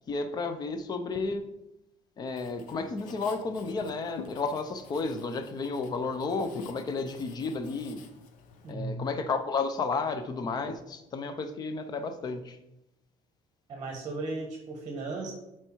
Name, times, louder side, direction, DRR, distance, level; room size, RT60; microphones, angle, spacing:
voice 1, 0.1-1.5 2.2-8.0 8.7-12.6, left 4 dB, 30° left, 9 dB, 0.7 m, -32 dB
Writing, 2.3-8.7, left 6 dB, 80° left, 0.9 m, -49 dB
voice 2, 8.6-9.1 13.7-15.3, right 3 dB, 35° right, 2 dB, 1.2 m, -36 dB
7.9 x 4.5 x 4.6 m, 0.89 s
cardioid pair, 155°, 13 cm